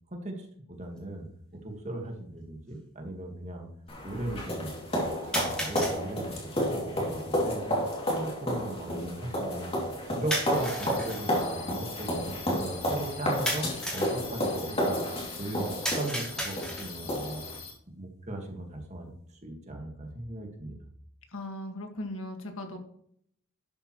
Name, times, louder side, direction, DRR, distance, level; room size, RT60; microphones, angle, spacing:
voice 1, 0.1-1.3 1.5-3.7 4.0-4.9 5.2-7.8 8.1-9.7 10.2-13.7 13.9-15.0 15.4-17.4 18.0-20.8, right 1 dB, 30° right, 2 dB, 1.8 m, -38 dB
sound 1, 1.0-1.1 2.0-2.1 5.3-6.0 10.3-11.2 13.5-14.2 15.8-17.0, equal, 5° left, 3.0 m, -33 dB
sound 2, 3.9-17.6, equal, 25° left, 2.7 m, -31 dB
sound 3, 10.5-17.7, left 5 dB, 45° left, 3.1 m, -44 dB
voice 2, 21.3-22.8, left 1 dB, 65° left, 4 dB, 1.9 m, -38 dB
12.0 x 8.1 x 3.1 m, 0.68 s
head